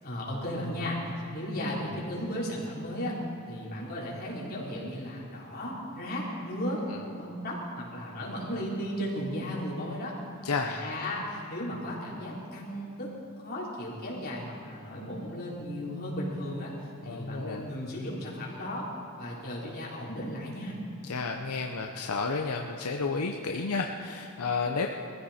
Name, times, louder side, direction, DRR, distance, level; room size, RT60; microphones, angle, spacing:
voice 1, 0.0-1.0 1.3-3.2 3.5-6.8 7.2-10.1 10.6-13.1 13.4-16.7 17.0-18.9 19.2-20.8, equal, 45° left, -6 dB, 4.1 m, -35 dB
voice 2, 10.4-10.9 17.1-17.7 21.0-24.9, left 4 dB, 85° left, 2 dB, 0.8 m, -31 dB
21.5 x 15.0 x 4.4 m, 2.4 s
head